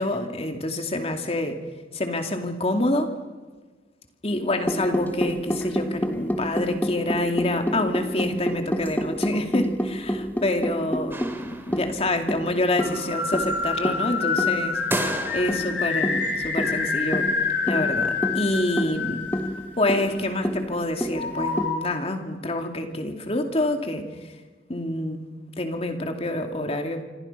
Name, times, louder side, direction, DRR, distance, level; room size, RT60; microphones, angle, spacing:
voice 1, 0.0-1.6 1.9-3.1 4.2-14.8 15.3-17.3 17.7-19.3 19.8-24.0 24.7-25.2 25.6-27.0, left 1 dB, 35° left, 5 dB, 2.6 m, -27 dB
sound 1, 4.7-21.7, equal, 10° left, 1.2 m, -29 dB
sound 2, 11.1-12.1 14.9-15.9, right 1 dB, 15° right, 2.3 m, -32 dB
sound 3, 12.8-20.0 21.1-21.8, left 4 dB, 85° left, 6.6 m, -27 dB
26.5 x 26.0 x 5.7 m, 1.3 s
head